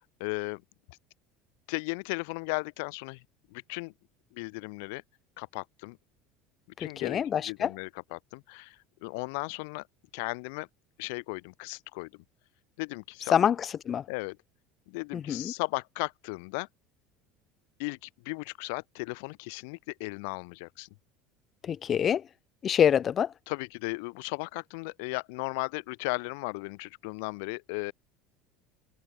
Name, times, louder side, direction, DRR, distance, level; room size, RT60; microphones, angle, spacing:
voice 1, 0.2-0.6 0.9-1.0 1.7-3.2 3.5-3.9 4.3-5.0 5.4-6.0 6.8-9.9 10.1-10.7 11.0-12.1 12.8-13.3 14.1-14.4 14.9-16.7 17.8-20.9 23.5-27.9, left 30 dB, 70° left, 5.5 m, -36 dB
voice 2, 6.8-7.7 13.3-14.0 15.1-15.5 21.6-22.2 22.6-23.3, left 8 dB, 40° left, 0.7 m, -26 dB
open air
hypercardioid pair, 80°, 0 cm